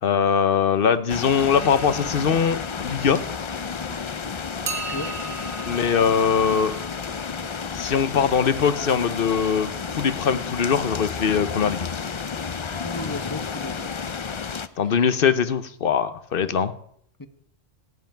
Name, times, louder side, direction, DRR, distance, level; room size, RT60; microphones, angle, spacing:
voice 1, 0.0-3.2 5.7-6.7 7.7-11.9 14.8-16.7, left 7 dB, 55° left, 13 dB, 1.0 m, -22 dB
sound 1, 1.1-14.7, left 6 dB, 40° left, 0.4 m, -31 dB
sound 2, 1.5-3.9 4.6-8.5, right 4 dB, 55° right, 1.2 m, -39 dB
sound 3, 2.8-14.1, equal, 90° left, 6.7 m, -48 dB
voice 2, 12.8-14.1 14.7-15.0 16.4-16.5 17.2-17.3, left 2 dB, 20° left, 9 dB, 0.9 m, -35 dB
16.0 x 5.6 x 9.2 m, 0.65 s
omnidirectional pair, 1.1 m